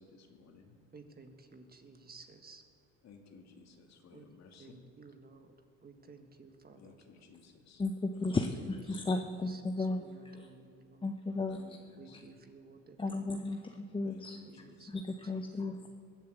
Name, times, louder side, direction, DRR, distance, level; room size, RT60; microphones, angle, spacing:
voice 1, 0.0-0.7 3.0-4.8 6.8-7.8 8.2-8.3 8.9-9.0 11.4-12.3 14.1-14.3 14.6-14.9, left 5 dB, 50° left, 3 dB, 2.4 m, -57 dB
voice 2, 0.9-2.6 4.1-4.2 4.6-5.5 5.8-6.9 8.9-11.0 12.0-13.4 14.4-15.0 15.7-15.9, right 4 dB, 30° right, 6 dB, 1.5 m, -55 dB
voice 3, 7.8-10.5 11.0-11.8 12.1-12.2 13.0-15.9, left 3 dB, 15° left, 5 dB, 0.8 m, -35 dB
21.0 x 7.5 x 8.1 m, 2.3 s
supercardioid pair, 100°, 33 cm